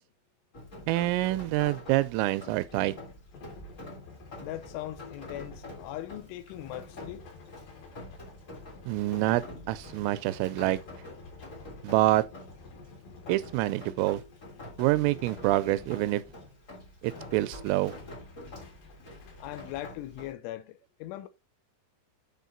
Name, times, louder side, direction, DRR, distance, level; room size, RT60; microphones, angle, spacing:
Rain, 0.5-20.3, left 1 dB, 35° left, 1.2 m, -47 dB
voice 1, 0.9-3.0 8.9-10.8 11.8-12.2 13.3-14.2 14.8-16.2 17.0-17.9, right 17 dB, 85° right, 3.2 m, -26 dB
sound 1, 2.5-16.7 17.0-19.9, left 4 dB, 55° left, 3.0 m, -51 dB
voice 2, 4.4-7.2 19.4-21.3, left 14 dB, 80° left, 3.0 m, -40 dB
9.2 x 4.3 x 4.0 m
omnidirectional pair, 5.7 m